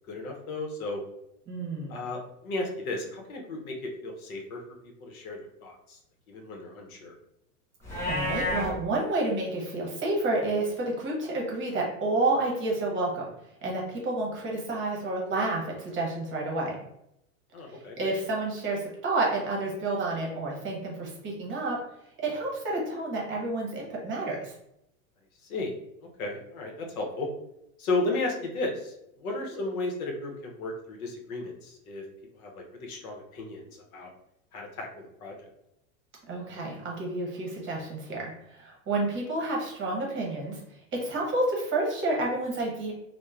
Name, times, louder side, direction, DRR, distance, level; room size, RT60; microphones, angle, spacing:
voice 1, 0.1-1.0 1.9-4.6 5.0-6.0 6.3-7.2 17.5-18.0 25.4-25.7 26.2-27.3 27.8-32.0 32.3-34.1 34.5-35.5, left 2 dB, 80° left, 1 dB, 0.8 m, -34 dB
voice 2, 1.5-2.1 8.1-13.3 13.6-16.8 18.0-21.8 22.2-24.5 29.5-29.6 36.3-40.6 41.0-42.9, right 2 dB, 25° right, -2 dB, 0.9 m, -30 dB
Livestock farm animals working animals, 7.8-8.7, left 1 dB, 5° left, 0.3 m, -29 dB
2.9 x 2.1 x 2.3 m, 0.80 s
hypercardioid pair, 110°, 43 cm